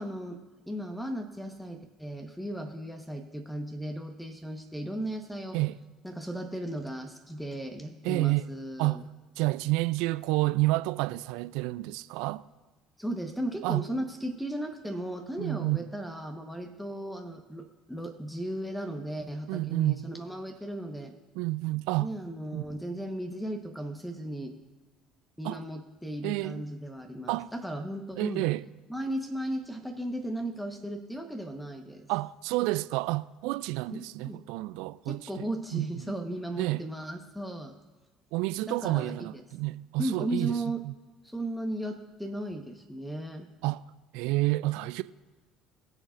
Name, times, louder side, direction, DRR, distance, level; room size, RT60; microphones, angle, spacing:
voice 1, 0.0-5.6 6.0-9.0 13.0-21.1 22.0-24.6 25.4-28.4 28.9-32.1 33.9-34.4 35.0-37.7 38.7-39.4 40.0-40.8 41.3-43.5, right 1 dB, ahead, 1.2 m, -36 dB
voice 2, 8.0-8.4 8.8-9.1 9.4-12.4 13.6-13.8 15.4-15.9 19.5-20.0 21.4-22.2 22.5-22.6 25.4-25.6 26.2-26.6 27.3-27.5 28.2-28.6 32.1-35.9 36.6-36.9 38.3-40.9 43.6-43.8 44.1-45.0, right 20 dB, 70° right, 0.3 m, -29 dB
21.0 x 7.2 x 2.5 m
hypercardioid pair, 60°, 0 cm